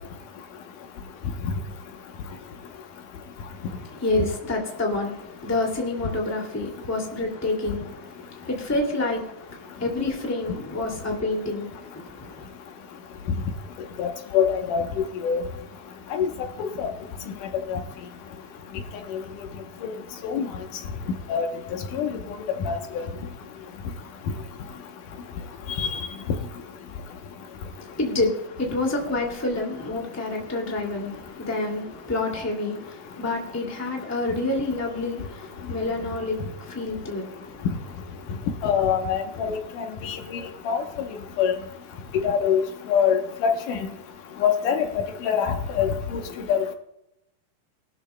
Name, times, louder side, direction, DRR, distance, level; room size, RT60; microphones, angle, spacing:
voice 1, 3.6-12.5 27.8-37.7 38.2-38.3, left 2 dB, 5° left, 1.8 m, -28 dB
voice 2, 14.0-14.8 15.2-15.4 16.1-16.3 16.6-16.9 17.7-17.8 19.8-19.9 20.2-20.5 21.3-21.5 21.9-22.1 22.7-23.0 25.8-25.9 38.6-39.6 40.0-40.8 41.4-41.5 42.2-42.6 42.9-43.8 44.4-46.2 46.5-46.7, left 7 dB, 75° left, 2.6 m, -24 dB
20.5 x 12.5 x 2.3 m
omnidirectional pair, 3.8 m